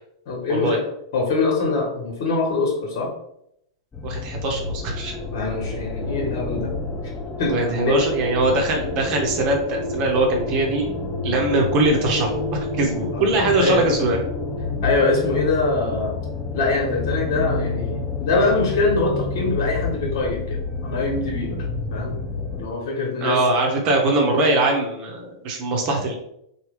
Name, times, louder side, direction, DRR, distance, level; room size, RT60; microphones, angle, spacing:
voice 1, 0.3-0.8 1.1-3.1 5.3-6.7 7.4-8.0 13.1-13.2 13.5-13.9 14.8-16.2 16.5-21.6 21.9-22.2 22.5-23.4, left 3 dB, 60° left, -1 dB, 1.2 m, -23 dB
sound 1, 3.9-22.7, left 3 dB, 15° left, 0.7 m, -29 dB
voice 2, 4.0-5.2 7.5-10.9 11.2-14.2 23.2-26.1, right 2 dB, 45° right, 1 dB, 0.8 m, -22 dB
3.3 x 2.3 x 3.3 m, 0.76 s
hypercardioid pair, 105°, 2 cm